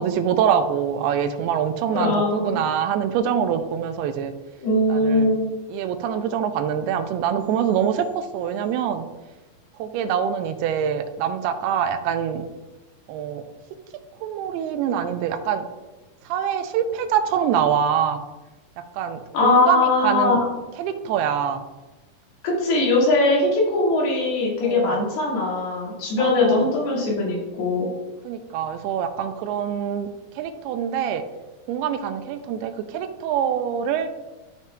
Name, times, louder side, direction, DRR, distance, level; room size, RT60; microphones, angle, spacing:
voice 1, 0.0-4.3 4.9-5.3 5.7-9.1 9.8-12.5 13.1-13.4 14.2-15.7 16.2-18.2 18.8-20.4 20.8-21.6 24.6-25.1 26.1-26.7 28.2-30.1 30.4-31.2 31.7-34.1, right 8 dB, 85° right, 8 dB, 2.6 m, -24 dB
voice 2, 1.9-2.6 4.6-5.5 19.3-20.5 22.4-27.9, left 2 dB, 80° left, -4 dB, 4.0 m, -21 dB
12.5 x 5.8 x 2.3 m, 1.1 s
omnidirectional pair, 4.6 m